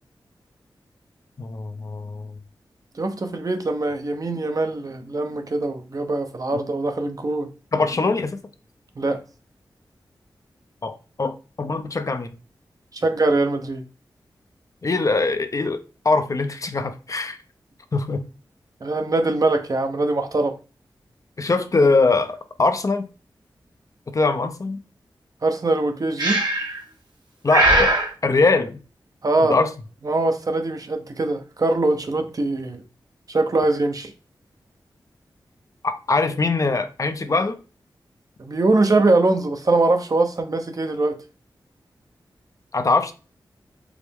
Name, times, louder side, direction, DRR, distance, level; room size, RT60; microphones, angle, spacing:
voice 1, 1.4-2.3 7.7-8.4 10.8-12.3 14.8-17.4 17.9-18.2 21.4-23.1 24.1-24.8 27.4-28.0 28.2-28.8 29.5-29.7 35.8-37.6 42.7-43.1, left 3 dB, 40° left, 0.4 m, -22 dB
voice 2, 3.0-7.5 9.0-9.2 12.9-13.8 18.8-20.5 25.4-26.4 29.2-29.6 30.0-32.8 33.3-34.1 38.4-41.2, right 2 dB, 45° right, 0.6 m, -22 dB
Breathing, 26.2-26.8 27.5-28.1, right 1 dB, 60° right, 1.0 m, -19 dB
4.7 x 2.0 x 3.4 m
cardioid pair, 50°, 8 cm